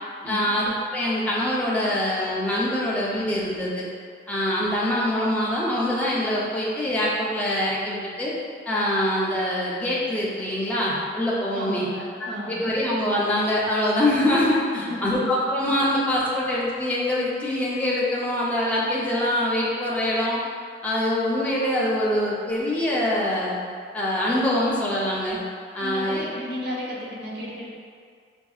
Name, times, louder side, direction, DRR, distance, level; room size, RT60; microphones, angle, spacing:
voice 1, 0.2-3.9 4.3-8.3 8.7-11.9 12.5-20.4 20.8-23.6 23.9-25.4 25.7-26.2, left 1 dB, 10° left, -7 dB, 0.6 m, -24 dB
voice 2, 11.5-12.6 14.7-15.3 16.3-16.4 25.8-27.7, equal, 65° right, -5 dB, 0.8 m, -33 dB
5.8 x 2.7 x 2.4 m, 2.1 s
head